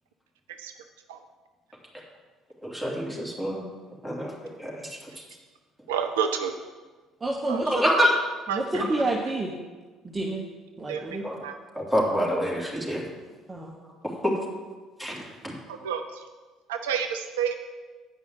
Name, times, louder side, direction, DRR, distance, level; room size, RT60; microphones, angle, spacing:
voice 1, 2.6-3.6 4.0-4.3 4.6-4.7 7.7-8.1 8.7-8.8 11.2-11.3 11.8-13.0 14.2-14.3 15.0-15.1 15.4-15.5, equal, ahead, -4 dB, 3.1 m, -25 dB
voice 2, 5.9-6.5 7.5-7.6 8.5-8.8 10.9-11.0 11.4-11.5 15.8-16.0 16.7-17.6, right 7 dB, 70° right, 6 dB, 0.5 m, -28 dB
voice 3, 7.2-7.9 8.5-9.5 10.0-10.5 10.8-11.2 13.5-13.7, right 2 dB, 20° right, -1 dB, 1.1 m, -29 dB
9.1 x 5.4 x 7.6 m, 1.3 s
figure-of-eight pair, 55°, 0 cm